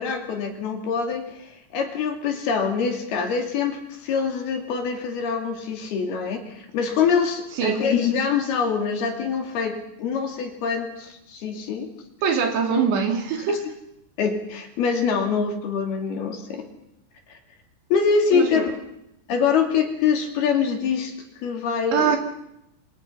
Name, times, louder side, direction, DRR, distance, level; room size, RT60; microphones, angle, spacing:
voice 1, 0.0-11.9 12.7-12.8 14.2-16.6 17.9-18.7 19.3-21.2 21.4-22.2, left 6 dB, 60° left, 4 dB, 4.4 m, -24 dB
voice 2, 12.2-13.7 18.3-18.6 21.9-22.2, right 6 dB, 70° right, 4 dB, 4.9 m, -23 dB
28.0 x 25.0 x 5.8 m, 0.83 s
omnidirectional pair, 5.4 m